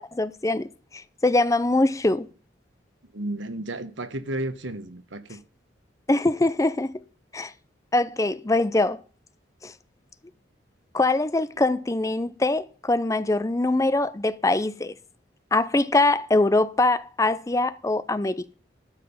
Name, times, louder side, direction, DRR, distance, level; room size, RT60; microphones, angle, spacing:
voice 1, 0.0-2.3 6.1-7.0 7.3-7.5 7.9-9.0 9.6-9.7 10.9-14.9 15.5-18.5, left 2 dB, 15° left, 0.5 m, -23 dB
voice 2, 3.1-5.4, right 1 dB, 85° right, 1.3 m, -32 dB
12.5 x 5.6 x 6.8 m
head